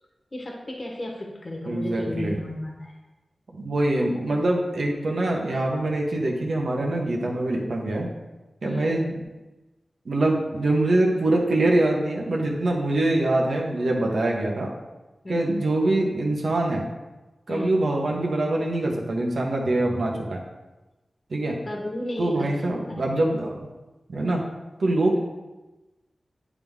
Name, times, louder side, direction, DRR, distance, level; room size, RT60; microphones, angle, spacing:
voice 1, 0.3-2.9 8.6-9.0 15.2-15.6 17.5-17.8 21.7-23.2, left 1 dB, 45° left, 0 dB, 1.3 m, -34 dB
voice 2, 1.7-2.4 3.5-8.1 8.6-9.1 10.0-14.7 15.3-16.8 17.5-20.4 21.3-21.6 22.2-23.7 24.1-24.4 24.8-25.2, right 2 dB, 80° right, -1 dB, 1.3 m, -24 dB
9.8 x 3.7 x 3.7 m, 1.1 s
cardioid pair, 50°, 0 cm